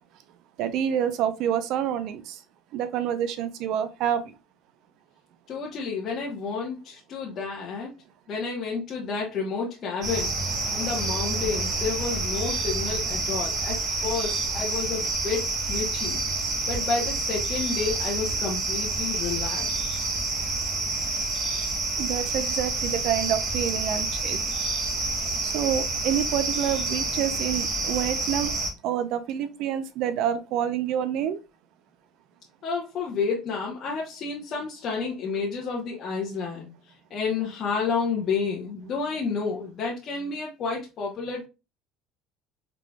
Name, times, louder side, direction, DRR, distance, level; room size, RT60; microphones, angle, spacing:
voice 1, 0.6-2.2 2.7-4.2 22.0-24.4 25.4-28.5 28.8-31.4, right 9 dB, 65° right, 0.6 m, -27 dB
voice 2, 5.5-7.9 8.3-10.3 10.7-16.2 16.7-20.0 32.6-36.7 37.1-41.5, left 5 dB, 40° left, 1.1 m, -30 dB
sound 1, 10.0-28.7, right 3 dB, 45° right, 1.4 m, -28 dB
4.9 x 3.7 x 2.3 m
cardioid pair, 135°, 0 cm